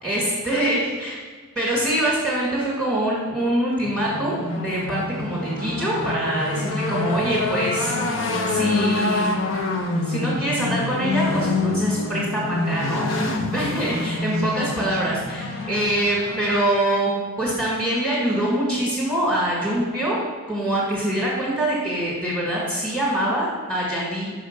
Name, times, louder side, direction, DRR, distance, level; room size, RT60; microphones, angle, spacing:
voice 1, 0.0-1.2 1.5-7.9 8.5-9.3 10.0-17.1 17.4-20.2 20.5-24.3, right 1 dB, ahead, -6 dB, 1.7 m, -24 dB
sound 1, 3.8-16.6, left 2 dB, 60° left, 0.8 m, -26 dB
5.7 x 5.0 x 6.5 m, 1.5 s
head